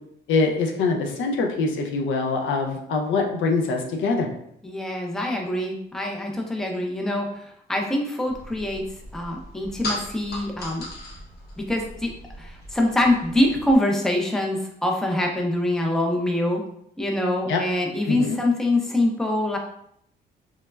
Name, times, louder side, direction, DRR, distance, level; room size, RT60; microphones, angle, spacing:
voice 1, 0.3-4.3 17.5-17.6 18.1-18.4, left 3 dB, 75° left, 2 dB, 0.5 m, -24 dB
voice 2, 4.6-8.8 9.1-10.9 11.6-12.1 12.4-16.6 17.0-19.6, left 1 dB, ahead, 0 dB, 0.4 m, -24 dB
sound 1, 8.3-13.8, left 1 dB, 55° left, 0.8 m, -38 dB
3.1 x 2.0 x 2.2 m, 0.73 s
cardioid pair, 90°, 20 cm